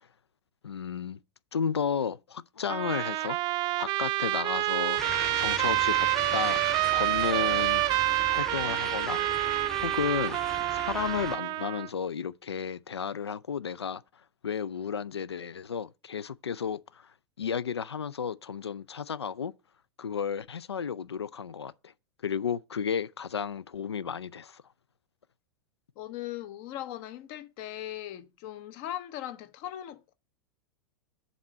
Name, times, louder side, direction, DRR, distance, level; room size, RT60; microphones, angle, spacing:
voice 1, 0.6-1.2 1.5-3.4 3.8-5.0 5.4-6.6 6.9-7.8 8.3-10.4 10.7-14.0 14.4-19.5 20.0-21.9 22.2-24.6, left 7 dB, 80° left, 0.4 m, -33 dB
Trumpet, 2.7-11.9, right 18 dB, 35° right, 0.4 m, -28 dB
sound 1, 5.0-11.4, equal, 5° left, 0.9 m, -38 dB
voice 2, 26.0-30.1, left 12 dB, 45° left, 0.9 m, -39 dB
7.2 x 4.3 x 6.3 m
figure-of-eight pair, 95°, 14 cm